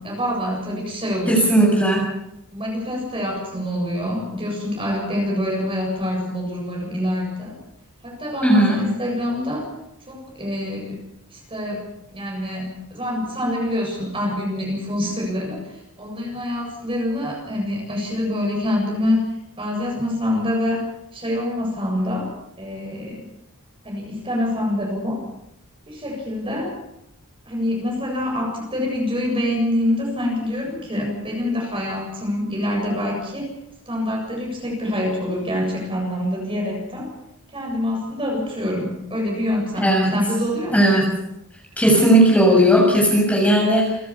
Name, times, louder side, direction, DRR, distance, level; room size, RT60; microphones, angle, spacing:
voice 1, 0.0-1.6 2.5-7.6 8.0-9.7 10.1-11.0 11.3-11.9 12.1-20.8 21.1-22.3 22.6-23.2 23.8-25.2 25.9-26.7 27.5-33.5 33.9-37.1 37.5-40.9, left 1 dB, 25° right, 0 dB, 7.7 m, -26 dB
voice 2, 1.3-2.1 8.4-8.8 39.8-40.1 40.7-41.1 41.8-44.0, right 1 dB, 5° left, -2 dB, 6.8 m, -16 dB
29.5 x 14.0 x 7.3 m, 0.84 s
head